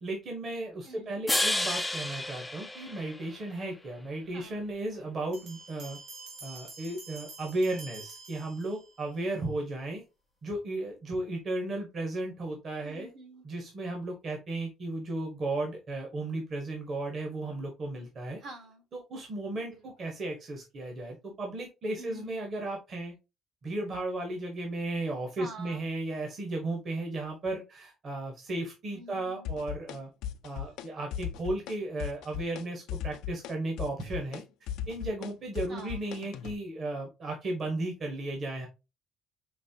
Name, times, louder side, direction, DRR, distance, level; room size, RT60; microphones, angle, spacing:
voice 1, 0.0-6.0 6.4-10.0 10.4-13.1 13.4-18.4 18.9-23.1 23.6-30.1 30.4-34.4 34.9-38.7, right 2 dB, 35° right, 2 dB, 1.2 m, -35 dB
voice 2, 0.8-1.2 4.3-4.6 12.8-13.4 18.4-18.8 19.7-19.8 22.0-22.4 25.4-25.8 28.9-29.5 35.7-36.0, right 2 dB, 55° right, 4 dB, 1.4 m, -46 dB
sound 1, 1.3-3.6, left 1 dB, 5° left, 0.4 m, -31 dB
sound 2, 5.3-9.1, right 4 dB, 80° right, 1.5 m, -47 dB
sound 3, 29.4-30.0 30.2-30.9 31.1-31.7 32.0-32.6 32.9-36.6, left 10 dB, 85° left, 0.5 m, -37 dB
5.3 x 3.1 x 2.7 m, 0.25 s
cardioid pair, 165°, 0 cm